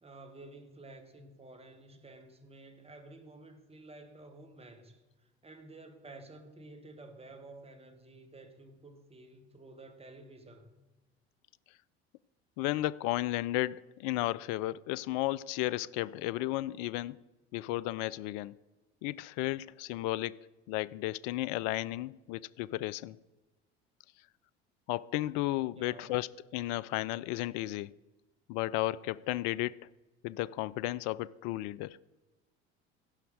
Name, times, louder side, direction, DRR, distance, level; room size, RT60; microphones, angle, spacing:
voice 1, 0.0-10.7 25.7-26.1, right 2 dB, 20° right, 1.7 m, -52 dB
voice 2, 12.6-17.2 17.5-18.6 19.0-23.2 24.9-27.9 28.5-29.9 30.2-32.0, left 16 dB, 55° left, 0.4 m, -34 dB
15.0 x 5.6 x 6.4 m
hypercardioid pair, 70°, 33 cm